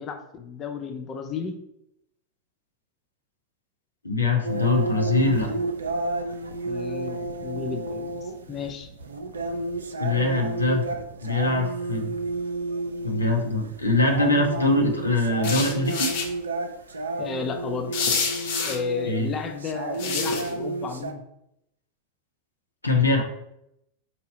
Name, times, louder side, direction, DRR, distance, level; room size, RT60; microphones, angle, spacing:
voice 1, 0.0-1.6 6.6-8.2 8.5-8.9 17.2-18.0 18.7-21.2, left 5 dB, 30° left, 4 dB, 0.5 m, -32 dB
voice 2, 4.0-5.5 10.0-10.8 11.2-12.1 13.0-16.1 19.0-19.3 22.8-23.3, left 2 dB, 80° left, 2 dB, 0.8 m, -23 dB
sound 1, 4.4-21.1, right 2 dB, 70° right, 0.5 m, -31 dB
sound 2, 15.4-16.3 17.9-18.8 20.0-20.5, left 5 dB, 55° left, 0.9 m, -27 dB
4.6 x 2.8 x 4.0 m, 0.80 s
figure-of-eight pair, 90°, 0 cm